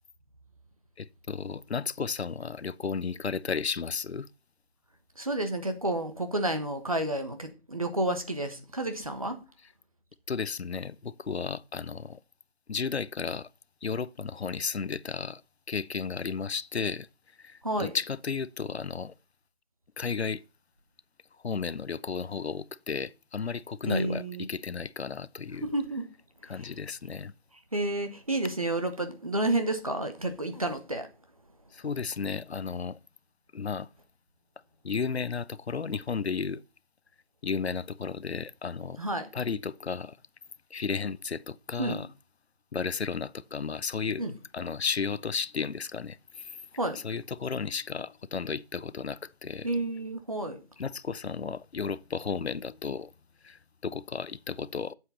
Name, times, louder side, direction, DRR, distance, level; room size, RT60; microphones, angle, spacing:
voice 1, 1.0-4.3 10.3-12.2 12.7-13.5 13.8-15.4 15.7-17.1 17.4-19.1 20.0-20.4 21.4-25.7 26.5-27.3 31.7-33.0 33.5-33.9 34.8-36.6 37.4-39.0 39.3-40.2 40.7-42.1 42.7-44.2 44.5-46.6 47.0-49.7 50.8-53.1 53.4-54.9, left 5 dB, 80° left, 0.7 m, -33 dB
voice 2, 5.1-9.4 17.6-18.0 23.9-24.5 25.6-26.1 26.4-26.7 27.7-31.1 39.0-39.3 41.8-42.0 44.2-44.3 46.8-47.0 49.6-50.6, right 1 dB, 35° right, 1.3 m, -30 dB
8.8 x 7.6 x 4.1 m
figure-of-eight pair, 175°, 32 cm